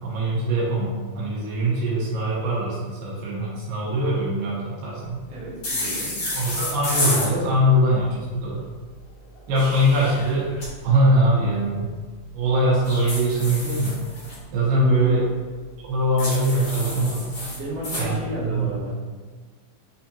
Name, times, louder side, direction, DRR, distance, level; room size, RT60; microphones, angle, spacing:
voice 1, 0.0-5.2 6.3-8.6 9.5-10.5 10.8-11.9 12.3-14.0 14.5-15.3 15.8-17.4 18.0-18.7, right 1 dB, 85° right, -6 dB, 2.9 m, -22 dB
voice 2, 5.3-6.2 14.3-14.4 14.7-15.2 17.5-18.9, right 1 dB, 55° right, -9 dB, 1.3 m, -32 dB
sound 1, 5.6-7.3 9.3-10.7 12.8-14.4 16.2-18.1, left 1 dB, 50° left, 1.2 m, -29 dB
6.4 x 2.8 x 2.8 m, 1.4 s
omnidirectional pair, 4.0 m